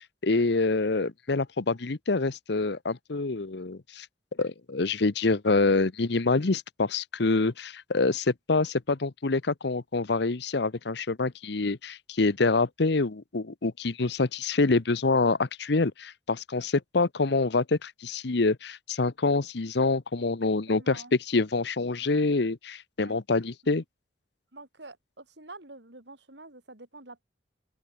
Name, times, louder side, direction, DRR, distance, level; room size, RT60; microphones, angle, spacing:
voice 1, 0.2-4.1 4.4-23.8, left 3 dB, 65° left, 0.9 m, -26 dB
voice 2, 20.7-21.1 23.0-23.2 23.6-23.8 24.5-27.2, right 2 dB, 65° right, 5.1 m, -47 dB
open air
head